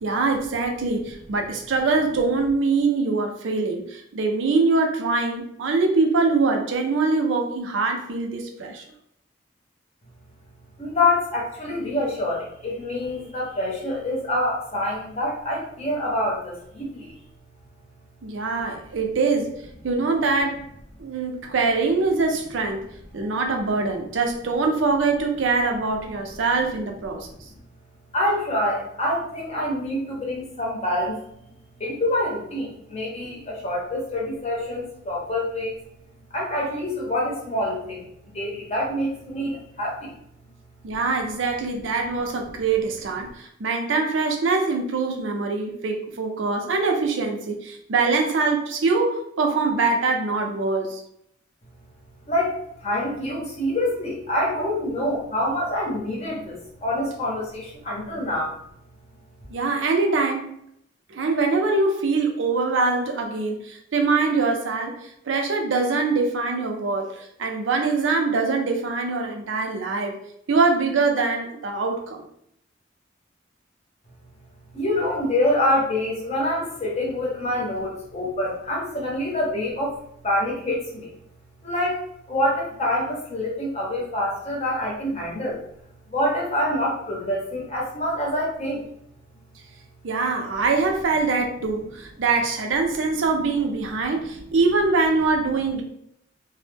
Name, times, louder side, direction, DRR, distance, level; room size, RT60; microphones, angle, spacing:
voice 1, 0.0-8.8 18.2-20.6 21.0-22.8 23.1-27.3 40.8-51.0 59.5-60.5 61.1-70.2 70.5-72.2 90.0-95.8, right 3 dB, 85° right, 3 dB, 0.5 m, -23 dB
voice 2, 10.8-17.1 23.3-23.4 28.1-31.2 31.8-35.7 36.3-38.1 38.3-40.1 52.3-58.5 74.7-80.0 80.2-81.1 81.6-82.0 82.3-85.6 86.1-88.9, left 1 dB, 35° left, -3 dB, 0.7 m, -26 dB
2.1 x 2.0 x 3.2 m, 0.73 s
head